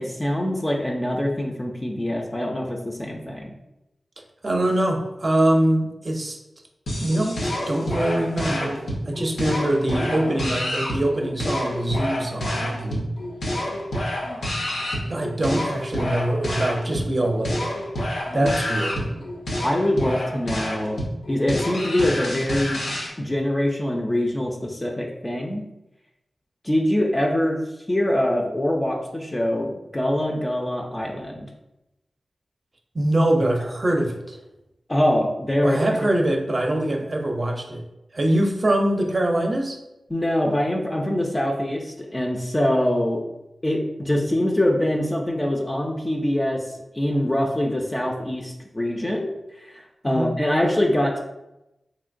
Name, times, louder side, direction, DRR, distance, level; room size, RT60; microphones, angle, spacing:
voice 1, 0.0-3.5 18.3-18.5 19.6-21.0 21.3-22.8 23.2-25.6 26.6-27.6 27.9-31.5 34.9-35.8 40.1-43.2 43.6-51.2, left 1 dB, 20° left, 0 dB, 0.4 m, -24 dB
voice 2, 4.4-6.4 7.0-8.8 9.1-13.1 15.1-17.7 18.3-19.1 32.9-34.4 35.6-37.8 38.1-39.8 50.0-50.3, right 1 dB, 40° right, 3 dB, 0.5 m, -23 dB
sound 1, 6.9-23.1, left 1 dB, 90° left, 0.6 m, -28 dB
3.0 x 2.8 x 2.5 m, 0.92 s
cardioid pair, 60°, 0 cm